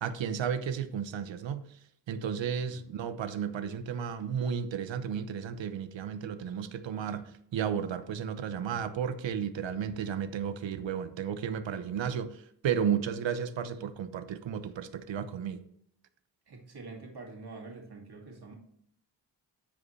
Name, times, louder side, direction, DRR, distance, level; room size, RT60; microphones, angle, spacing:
voice 1, 0.0-1.8 2.1-15.6, right 8 dB, 70° right, 11 dB, 0.9 m, -33 dB
voice 2, 16.5-18.6, right 3 dB, 55° right, 0 dB, 2.5 m, -46 dB
13.0 x 5.0 x 3.2 m, 0.68 s
cardioid pair, 55°, 46 cm